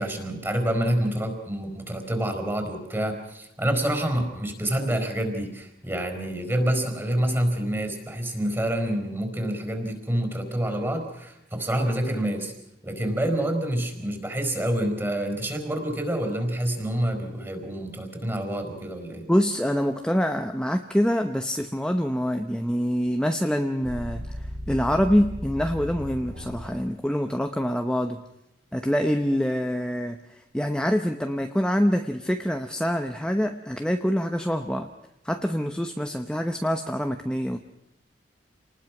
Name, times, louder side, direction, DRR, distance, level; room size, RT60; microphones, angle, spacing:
voice 1, 0.0-12.5 12.8-19.3, right 1 dB, 15° right, 5 dB, 4.5 m, -27 dB
voice 2, 19.3-28.2 28.7-34.9 35.2-37.6, equal, 5° left, 5 dB, 0.9 m, -25 dB
sound 1, 23.8-26.8, equal, 80° right, 4.4 m, -35 dB
28.0 x 19.5 x 6.0 m, 0.85 s
head